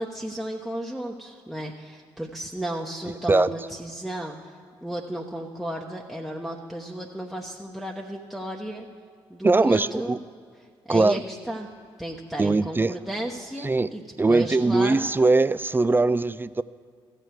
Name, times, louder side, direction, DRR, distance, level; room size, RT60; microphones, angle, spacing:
voice 1, 0.0-4.5 4.8-8.9 9.3-10.2 10.9-11.7 12.0-15.1, right 1 dB, ahead, -2 dB, 1.0 m, -33 dB
voice 2, 9.4-10.2 10.9-11.2 12.4-12.9 13.6-13.9 14.2-16.6, right 3 dB, 15° right, 16 dB, 0.3 m, -21 dB
15.0 x 6.7 x 4.7 m, 2.1 s
hypercardioid pair, 40°, 12 cm